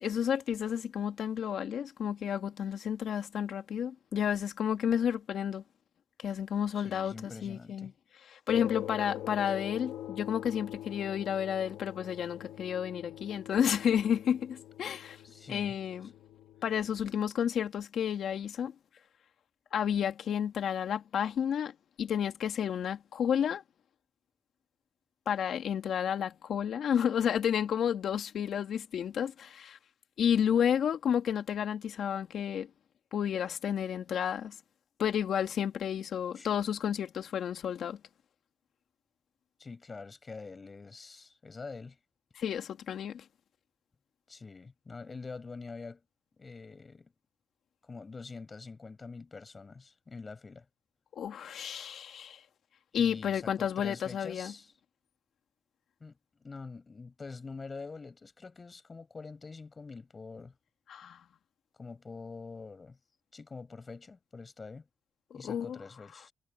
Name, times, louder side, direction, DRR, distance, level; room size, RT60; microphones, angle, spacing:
voice 1, 0.0-5.6 6.2-7.9 8.3-15.2 15.5-16.1 16.6-18.7 19.7-21.7 22.0-23.6 25.3-29.8 30.2-32.7 33.1-34.6 35.0-38.0 42.4-43.2 51.2-52.4 52.9-54.5 60.9-61.2 65.4-65.8, left 8 dB, 75° left, 2.2 m, -31 dB
voice 2, 6.7-7.9 15.2-15.8 36.4-36.5 39.6-42.0 44.3-46.0 46.4-47.1 47.8-50.7 52.9-54.7 56.0-60.5 61.8-63.0 63.3-64.9 65.3-66.3, left 4 dB, 40° left, 6.3 m, -45 dB
sound 1, 8.5-17.2, left 12 dB, 90° left, 2.4 m, -43 dB
supercardioid pair, 55°, 0 cm